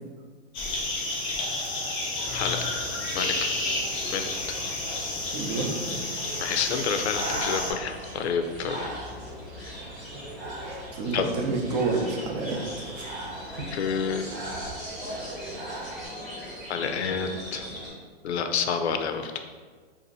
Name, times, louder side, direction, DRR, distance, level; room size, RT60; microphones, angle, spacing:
sound 1, 0.5-7.7, left 2 dB, 15° left, 0.5 m, -31 dB
sound 2, 2.2-17.9, equal, ahead, 1.0 m, -40 dB
voice 1, 2.3-2.7 3.1-3.5 4.1-4.3 6.4-8.9 9.6-9.7 11.1-11.2 13.7-14.2 16.7-17.7 18.2-19.3, left 6 dB, 85° left, 7 dB, 0.5 m, -28 dB
voice 2, 5.3-5.7 10.9-12.6, right 3 dB, 40° right, 1 dB, 0.6 m, -28 dB
Breathing, 6.6-16.1, right 2 dB, 65° right, 0.9 m, -40 dB
2.8 x 2.6 x 3.8 m, 1.5 s
hypercardioid pair, 150°, 32 cm